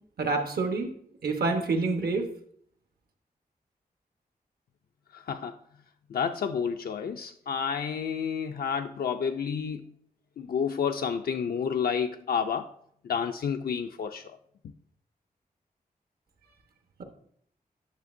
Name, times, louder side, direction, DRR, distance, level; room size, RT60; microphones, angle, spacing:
voice 1, 0.2-0.9 1.2-2.3, right 3 dB, 80° right, 1.1 m, -27 dB
voice 2, 5.1-5.6 6.1-9.9 10.4-12.7 13.0-14.4, left 7 dB, 75° left, 0.4 m, -30 dB
9.3 x 6.5 x 2.5 m
wide cardioid pair, 115°, 16 cm